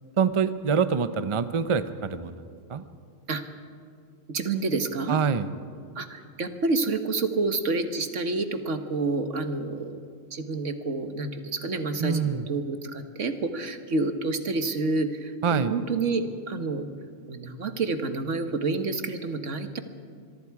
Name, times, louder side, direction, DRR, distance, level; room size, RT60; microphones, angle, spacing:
voice 1, 0.2-2.4 2.7-2.8 5.1-5.5 12.0-12.4 15.4-15.8, right 6 dB, 30° right, 12 dB, 0.6 m, -25 dB
voice 2, 4.3-5.2 6.0-10.0 10.3-16.9 17.3-19.8, right 3 dB, 70° right, 8 dB, 1.7 m, -28 dB
25.5 x 23.0 x 4.8 m, 2.3 s
omnidirectional pair, 1.3 m